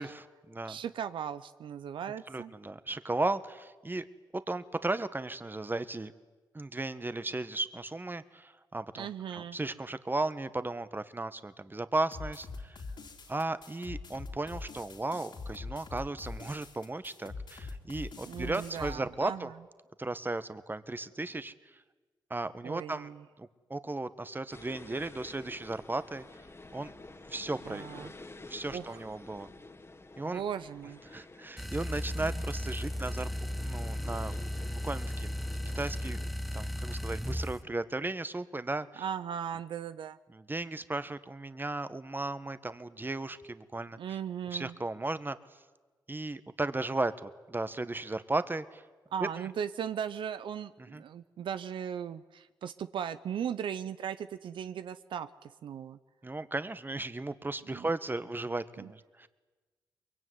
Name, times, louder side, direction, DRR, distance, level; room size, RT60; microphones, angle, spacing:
voice 1, 0.0-0.8 2.3-4.0 4.3-6.1 6.5-9.1 9.3-12.8 13.3-19.5 20.0-21.8 22.3-23.1 23.4-26.2 26.7-26.9 27.3-28.1 28.5-29.5 30.2-30.4 31.1-33.3 33.6-34.3 34.6-35.5 35.7-36.2 36.5-39.0 40.3-44.0 44.5-45.4 46.1-48.8 49.4-49.5 50.8-51.0 56.2-59.3, right 2 dB, 25° right, 13 dB, 1.6 m, -35 dB
voice 2, 0.7-2.5 9.0-9.6 18.3-19.5 22.6-23.2 27.7-28.1 28.7-29.0 30.2-31.0 32.2-32.4 39.0-40.2 44.0-44.7 49.1-56.0 57.7-57.9 58.8-58.9, right 8 dB, 80° right, 12 dB, 0.7 m, -38 dB
sound 1, 12.1-18.9, left 3 dB, 65° left, 3.9 m, -43 dB
sound 2, 24.5-36.3, left 2 dB, 30° left, 2.2 m, -51 dB
sound 3, 31.6-37.6, equal, ahead, 1.2 m, -35 dB
24.0 x 22.5 x 9.6 m, 1.3 s
cardioid pair, 50°, 8 cm